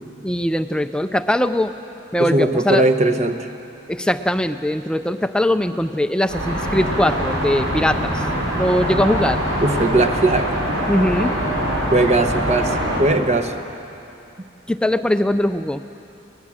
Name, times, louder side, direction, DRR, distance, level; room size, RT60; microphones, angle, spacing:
voice 1, 0.2-1.7 2.1-2.8 3.9-8.3 8.5-9.4 10.9-11.3 14.7-15.8, left 1 dB, 5° left, 9 dB, 0.4 m, -21 dB
voice 2, 2.2-3.5 9.6-10.6 11.9-13.5, right 2 dB, 35° right, 7 dB, 1.0 m, -19 dB
sound 1, 6.3-13.0, right 1 dB, 75° right, 6.4 m, -23 dB
21.0 x 19.5 x 7.4 m, 2.8 s
head